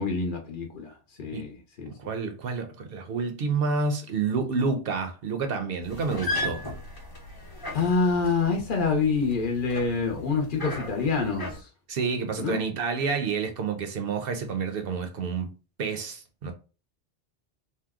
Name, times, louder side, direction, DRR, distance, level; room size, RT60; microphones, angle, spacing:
voice 1, 0.0-1.9 7.7-11.7 12.4-12.6, left 4 dB, 55° left, 0.8 m, -26 dB
voice 2, 1.9-6.6 11.9-15.5 15.8-16.5, right 4 dB, 65° right, 0.7 m, -29 dB
sound 1, 5.8-11.6, left 1 dB, 25° left, 0.7 m, -36 dB
2.7 x 2.0 x 3.5 m
omnidirectional pair, 1.1 m